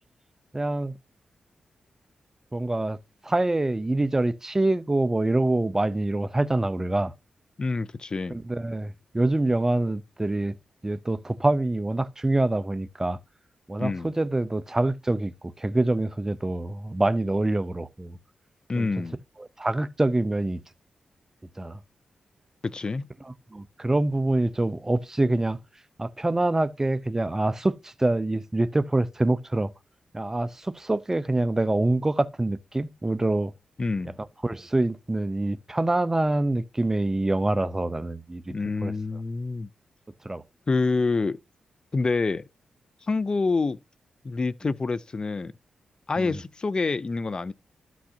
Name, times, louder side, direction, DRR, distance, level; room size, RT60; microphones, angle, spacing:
voice 1, 0.5-0.9 2.5-3.0 3.2-7.1 8.3-10.6 10.8-13.2 13.7-18.2 18.8-18.9 19.4-20.6 21.6-21.8 23.2-25.6 26.0-29.7 30.1-33.5 34.4-38.5 38.8-38.9 40.2-40.4 46.2-46.4, right 2 dB, 20° right, 0.7 m, -25 dB
voice 2, 7.6-8.4 13.8-14.1 18.7-19.2 22.6-23.1 33.8-34.1 38.5-39.7 40.7-41.4 41.9-42.4 43.1-43.8 44.2-45.5 46.1-47.5, left 3 dB, 40° left, 0.5 m, -27 dB
12.5 x 6.1 x 2.8 m
cardioid pair, 50°, 2 cm